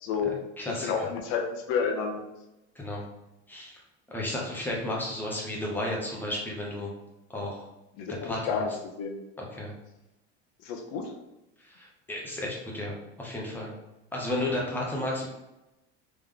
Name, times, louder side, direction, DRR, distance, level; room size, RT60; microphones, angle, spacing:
voice 1, 0.0-0.4 0.8-2.2 8.0-8.7 9.0-9.2 10.6-11.1, left 6 dB, 55° left, 3 dB, 0.7 m, -30 dB
voice 2, 0.6-0.9 2.8-3.0 3.5-3.8 4.1-6.9 7.3-7.7 8.2-8.6 9.4-9.7 11.6-13.7 14.1-15.4, left 1 dB, 5° left, -3 dB, 0.7 m, -33 dB
3.5 x 3.1 x 3.5 m, 0.94 s
cardioid pair, 170°, 29 cm